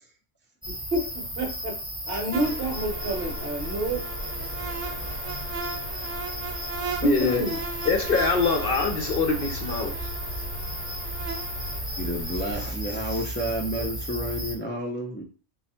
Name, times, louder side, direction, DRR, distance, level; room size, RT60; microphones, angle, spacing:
sound 1, 0.6-14.5, right 1 dB, 5° right, 0.7 m, -35 dB
voice 1, 0.7-1.7 2.1-4.0 7.2-7.6, right 1 dB, 60° right, 2 dB, 1.0 m, -29 dB
sound 2, 2.3-12.7, left 1 dB, 35° left, 1.0 m, -39 dB
sound 3, 2.3-11.8, right 5 dB, 85° right, 0.9 m, -38 dB
voice 2, 7.0-7.4 7.9-9.9, left 4 dB, 60° left, 4 dB, 0.6 m, -23 dB
voice 3, 12.0-15.2, equal, 20° left, -2 dB, 0.3 m, -30 dB
3.3 x 2.3 x 4.1 m, 0.39 s
omnidirectional pair, 1.2 m